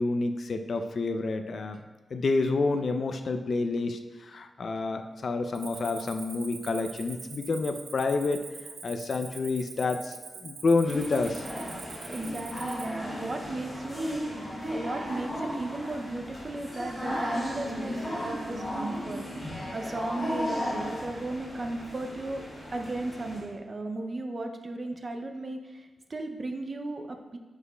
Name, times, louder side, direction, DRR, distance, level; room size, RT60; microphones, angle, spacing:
voice 1, 0.0-1.8 2.1-8.4 8.8-10.2 10.4-11.5, left 3 dB, 45° left, 7 dB, 0.3 m, -28 dB
Cricket, 5.5-13.0, right 5 dB, 90° right, 0.6 m, -44 dB
sound 1, 10.8-23.4, equal, 15° left, 1.9 m, -35 dB
voice 2, 12.1-22.5 22.7-27.4, right 2 dB, 30° right, 5 dB, 0.4 m, -36 dB
9.7 x 4.9 x 2.2 m, 1.3 s
wide cardioid pair, 175°, 0 cm